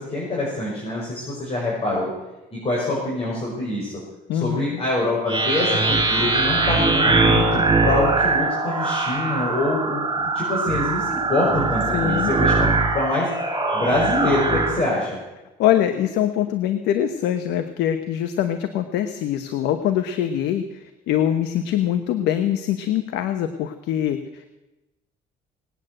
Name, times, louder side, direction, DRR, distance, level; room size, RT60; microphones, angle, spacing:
voice 1, 0.0-2.1 2.5-3.9 4.3-13.3 13.7-15.2, left 2 dB, 35° left, -5 dB, 5.7 m, -25 dB
voice 2, 4.3-4.8 11.9-12.3 15.6-24.5, left 10 dB, 85° left, 8 dB, 1.1 m, -23 dB
sound 1, 5.3-14.7, right 3 dB, 30° right, 5.8 m, -21 dB
19.5 x 9.2 x 7.8 m, 1.0 s
cardioid pair, 110°, 17 cm